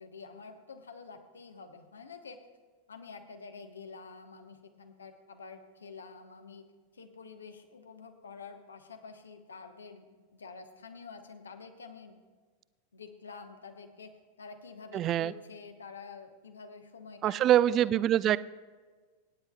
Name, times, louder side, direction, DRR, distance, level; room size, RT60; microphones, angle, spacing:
voice 1, 0.0-2.4 2.9-6.7 6.9-12.2 12.9-17.9, left 5 dB, 70° left, 7 dB, 1.1 m, -48 dB
voice 2, 14.9-15.3 17.2-18.4, right 11 dB, 30° right, 18 dB, 0.3 m, -24 dB
26.0 x 9.6 x 2.4 m, 1.4 s
figure-of-eight pair, 90°, 0 cm